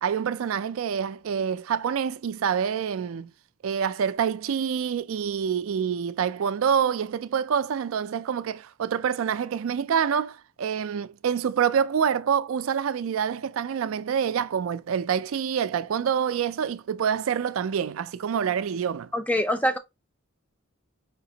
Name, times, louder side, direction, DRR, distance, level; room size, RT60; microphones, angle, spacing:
voice 1, 0.0-3.3 3.6-19.1, right 7 dB, 70° right, 0.3 m, -26 dB
voice 2, 19.1-19.8, equal, 5° left, 0.4 m, -24 dB
5.1 x 2.8 x 2.7 m
head